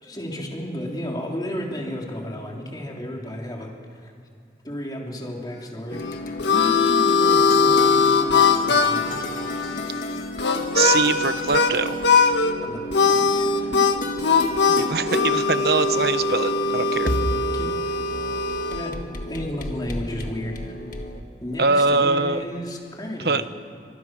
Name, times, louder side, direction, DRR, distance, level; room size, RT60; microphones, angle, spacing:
voice 1, 0.0-4.1 4.6-6.1 6.5-9.3 11.1-11.2 12.6-13.9 17.0-18.0 18.7-19.0 19.3-20.8 21.4-23.5, equal, 20° left, -1 dB, 3.4 m, -33 dB
Harmonica, 5.9-11.7 12.0-12.5 12.9-18.9, left 4 dB, 80° left, 1.6 m, -21 dB
sound 1, 5.9-21.2, left 1 dB, 45° left, 1.8 m, -32 dB
voice 2, 10.7-12.0 14.8-17.1 21.6-22.4 23.2-23.4, right 4 dB, 60° right, 11 dB, 1.0 m, -22 dB
29.0 x 25.5 x 6.2 m, 2.3 s
head